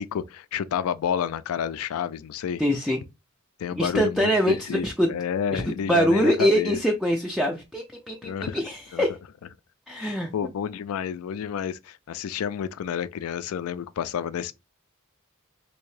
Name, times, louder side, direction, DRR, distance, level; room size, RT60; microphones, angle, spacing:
voice 1, 0.0-2.6 3.6-6.8 8.2-8.6 8.9-9.0 10.0-14.6, left 8 dB, 80° left, 0.3 m, -30 dB
voice 2, 2.6-3.0 3.8-5.1 5.5-5.6 5.9-9.2 9.9-10.3, equal, ahead, 0.3 m, -24 dB
3.5 x 2.7 x 3.1 m
head